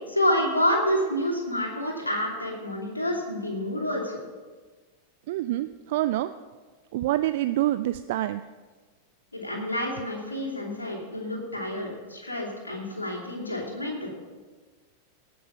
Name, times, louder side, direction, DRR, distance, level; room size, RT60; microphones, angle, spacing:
voice 1, 0.1-4.2 9.3-14.1, equal, 80° left, -2 dB, 2.7 m, -28 dB
voice 2, 5.3-6.3 6.9-8.4, right 15 dB, 50° right, 12 dB, 0.3 m, -26 dB
18.0 x 6.2 x 5.8 m, 1.4 s
figure-of-eight pair, 90°, 0 cm